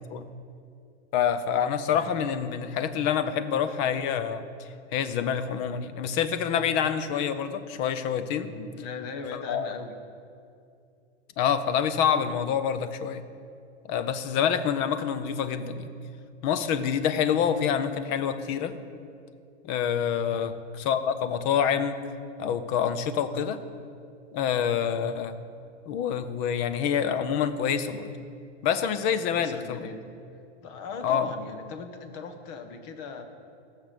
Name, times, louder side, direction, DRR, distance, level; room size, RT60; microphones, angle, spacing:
voice 1, 1.1-8.5 9.5-9.7 11.4-13.2 13.9-15.9 16.4-18.7 19.6-22.0 22.4-23.6 24.3-25.4 25.9-28.1 28.6-29.8 31.0-31.3, left 8 dB, 20° left, 12 dB, 0.4 m, -27 dB
voice 2, 8.3-9.9 20.3-20.6 29.3-30.0 30.6-33.2, left 5 dB, 35° left, 7 dB, 1.2 m, -39 dB
15.5 x 6.4 x 6.6 m, 2.5 s
hypercardioid pair, 145°, 35 cm